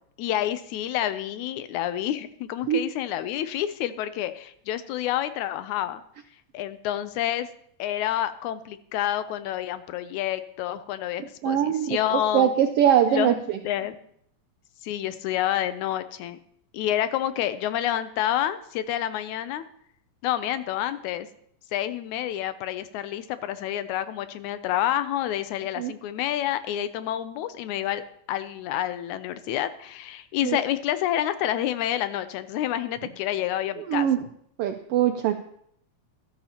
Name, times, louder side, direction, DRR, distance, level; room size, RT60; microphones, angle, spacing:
voice 1, 0.2-6.0 6.5-7.5 7.8-12.5 13.1-14.0 14.8-16.4 16.7-19.7 20.2-21.3 21.7-28.0 28.3-34.3, left 12 dB, 85° left, 12 dB, 2.1 m, -28 dB
voice 2, 11.4-13.6 25.8-25.9 30.4-30.6 33.8-34.2 34.6-35.3, right 10 dB, 85° right, 6 dB, 1.3 m, -22 dB
13.5 x 12.5 x 2.9 m, 0.70 s
omnidirectional pair, 3.3 m